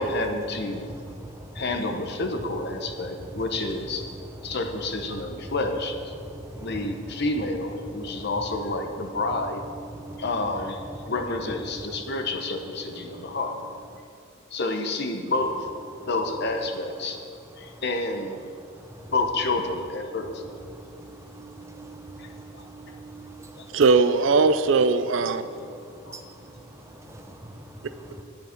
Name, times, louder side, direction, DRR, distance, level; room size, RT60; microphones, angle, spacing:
voice 1, 0.0-0.9 1.5-4.0 4.4-6.1 6.6-9.6 10.2-13.5 14.5-15.6 16.1-17.2 17.6-18.4 19.1-20.4 22.2-22.6 23.6-23.8 26.1-26.2, left 2 dB, 55° left, 5 dB, 0.9 m, -29 dB
voice 2, 0.7-2.2 2.7-5.6 6.1-7.2 7.8-8.4 8.8-9.4 9.7-13.4 13.9-14.0 15.9-16.1 17.0-17.8 18.6-19.1 20.1-23.8 25.0-28.2, right 1 dB, 15° right, 5 dB, 0.6 m, -43 dB
voice 3, 23.7-25.5, right 4 dB, 65° right, 11 dB, 0.5 m, -19 dB
10.5 x 9.7 x 4.5 m, 2.4 s
head